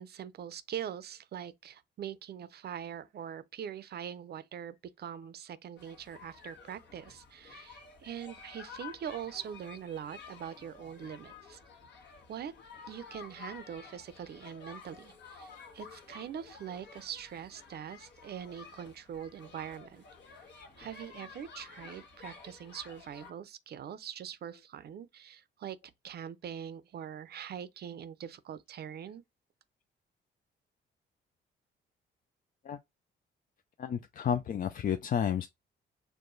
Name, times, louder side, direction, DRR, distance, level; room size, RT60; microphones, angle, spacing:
voice 1, 0.0-11.6 12.3-12.5 12.9-20.1 20.8-25.8 26.0-29.2, right 9 dB, 55° right, 0.6 m, -43 dB
sound 1, 5.8-23.3, left 5 dB, 65° left, 1.2 m, -51 dB
voice 2, 33.8-35.5, left 8 dB, 45° left, 0.4 m, -31 dB
4.7 x 2.2 x 3.9 m
cardioid pair, 90°, 20 cm